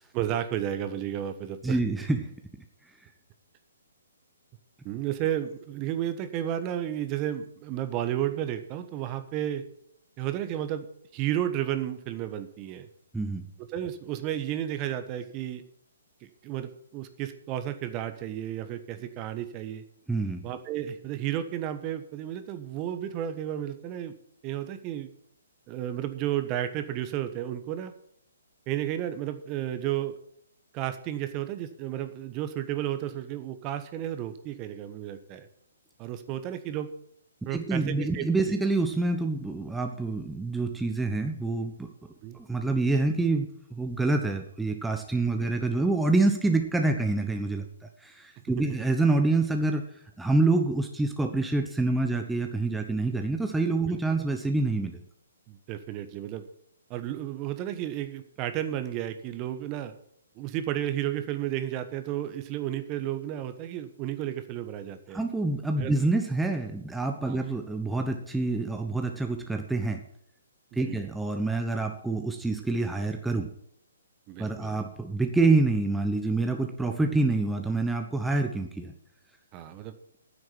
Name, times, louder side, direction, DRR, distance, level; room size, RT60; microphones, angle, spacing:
voice 1, 0.1-1.8 4.8-9.6 10.2-10.9 11.1-12.9 13.7-15.6 16.4-19.8 20.4-24.1 24.4-25.1 25.7-27.9 28.7-30.2 30.7-35.5 36.0-36.9 37.5-38.6 42.2-42.4 45.4-45.5 53.9-54.0 55.5-56.4 56.9-59.9 60.4-65.2 65.8-66.0 67.3-67.4 70.7-71.1 74.3-74.8 79.5-79.9, right 11 dB, 30° right, 10 dB, 1.2 m, -32 dB
voice 2, 1.6-2.3 13.1-13.5 20.1-20.5 37.5-41.9 42.3-47.6 48.0-49.9 50.2-55.0 65.1-70.0 70.7-73.5 74.4-78.9, right 2 dB, 5° right, 4 dB, 1.0 m, -27 dB
9.7 x 7.7 x 8.7 m, 0.71 s
figure-of-eight pair, 130°, 0 cm